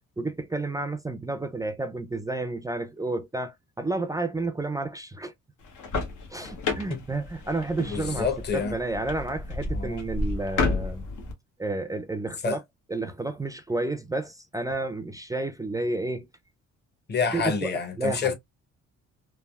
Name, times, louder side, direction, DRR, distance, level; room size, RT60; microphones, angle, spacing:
voice 1, 0.2-5.3 6.3-8.3 8.5-11.1 11.6-12.6 12.9-16.3 17.3-17.7 18.0-18.3, right 2 dB, 10° right, 0.4 m, -31 dB
sound 1, 5.6-11.3, left 3 dB, 80° left, 1.0 m, -31 dB
voice 2, 7.9-8.7 9.7-10.0 12.4-12.6 17.1-18.3, left 5 dB, 35° left, 0.9 m, -28 dB
3.3 x 2.3 x 2.2 m
cardioid pair, 90°, 30 cm